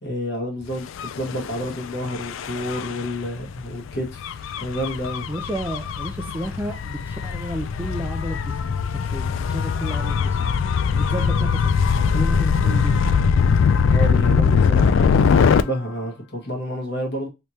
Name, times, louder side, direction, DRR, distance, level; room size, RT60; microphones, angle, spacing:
voice 1, 0.0-5.3 13.9-17.3, equal, 50° left, 1.4 m, -29 dB
Gull seagull / Waves surf / Siren, 0.9-15.6, left 6 dB, 70° left, 0.3 m, -21 dB
voice 2, 5.3-10.5 10.9-11.7 12.0-13.1, equal, 10° right, 0.4 m, -32 dB
3.4 x 3.0 x 2.8 m
head